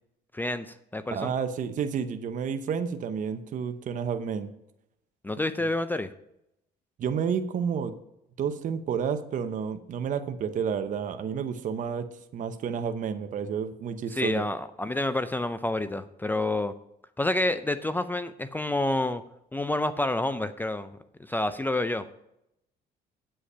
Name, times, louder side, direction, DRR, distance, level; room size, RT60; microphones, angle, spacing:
voice 1, 0.3-1.3 5.2-6.1 14.1-16.7 17.2-19.2 19.5-20.9 21.3-22.1, left 2 dB, 10° left, 12 dB, 0.5 m, -28 dB
voice 2, 1.1-4.5 7.0-8.0 8.4-12.1 12.3-14.5, right 7 dB, 50° right, 8 dB, 0.9 m, -30 dB
8.4 x 7.7 x 5.6 m, 0.81 s
cardioid pair, 110°, 17 cm